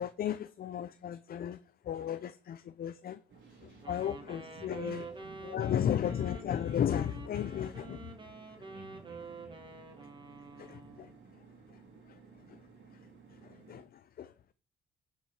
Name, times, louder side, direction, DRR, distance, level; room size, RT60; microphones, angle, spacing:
voice 1, 0.0-1.6 1.9-3.2 3.6-5.1 5.4-8.1 10.6-11.1 13.4-14.3, left 9 dB, 50° left, 0.5 m, -34 dB
voice 2, 3.3-4.1 4.5-5.8 8.7-9.6, right 3 dB, 45° right, 2.2 m, -55 dB
sound 1, 3.3-13.8, right 5 dB, 65° right, 2.2 m, -57 dB
Wind instrument woodwind instrument, 3.8-11.3, right 4 dB, 25° right, 2.1 m, -48 dB
11.5 x 5.5 x 4.8 m
cardioid pair, 90°, 20 cm